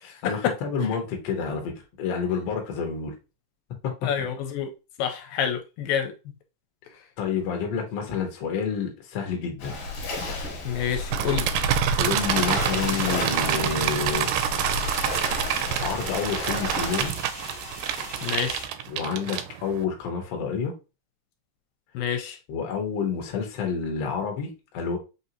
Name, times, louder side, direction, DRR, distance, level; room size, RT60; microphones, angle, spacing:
voice 1, 0.0-3.1 3.8-3.9 7.2-9.8 11.9-14.3 15.8-17.1 18.2-18.4 18.9-20.7 22.5-25.0, left 6 dB, 65° left, 1.6 m, -29 dB
voice 2, 4.0-4.7 5.0-6.1 10.7-11.5 18.2-18.7 21.9-22.4, left 8 dB, 85° left, 2.3 m, -28 dB
Waves surf, 9.6-17.1, left 2 dB, 50° left, 2.1 m, -32 dB
sound 1, 11.1-19.8, right 11 dB, 80° right, 2.0 m, -27 dB
sound 2, 12.2-18.7, equal, 30° right, 0.4 m, -40 dB
5.7 x 2.7 x 2.7 m
omnidirectional pair, 4.1 m